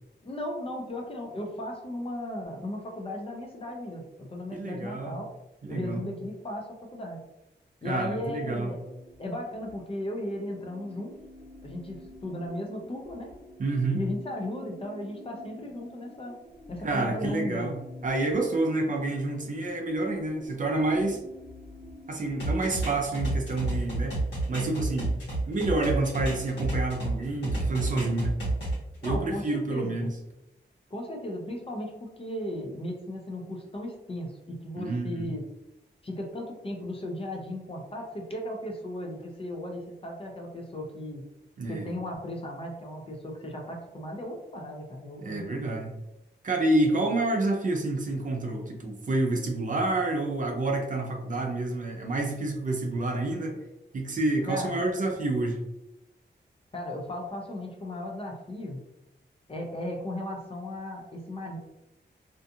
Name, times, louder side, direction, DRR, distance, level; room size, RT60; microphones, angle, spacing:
voice 1, 0.2-5.3 5.7-7.2 7.8-8.8 9.2-11.1 11.6-13.3 13.9-16.4 16.7-17.8 29.0-30.1 30.9-35.4 36.0-41.2 41.7-45.8 54.4-54.8 56.7-58.8 59.5-61.6, left 1 dB, 30° left, 1 dB, 0.4 m, -36 dB
voice 2, 4.5-5.2 5.6-6.1 7.8-8.7 13.6-14.0 16.8-21.2 22.1-24.2 24.5-25.1 25.5-28.4 29.0-30.1 34.8-35.3 41.6-41.9 45.2-45.9 46.4-53.6 53.9-55.6, right 2 dB, 45° right, 2 dB, 0.4 m, -28 dB
sound 1, 8.0-23.0, left 1 dB, 15° right, 0.9 m, -50 dB
sound 2, 22.4-27.1 27.4-29.2, right 2 dB, 70° left, 1.1 m, -30 dB
2.5 x 2.3 x 2.6 m, 0.89 s
wide cardioid pair, 175°, 19 cm